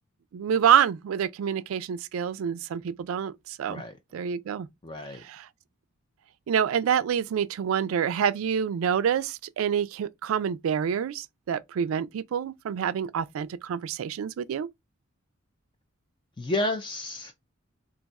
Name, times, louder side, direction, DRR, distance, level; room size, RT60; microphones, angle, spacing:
voice 1, 0.3-3.8 4.1-4.7 5.1-5.5 6.5-14.7, right 8 dB, 80° right, 0.3 m, -27 dB
voice 2, 4.8-5.2 16.4-17.3, left 1 dB, 25° left, 0.3 m, -31 dB
2.5 x 2.3 x 4.0 m
head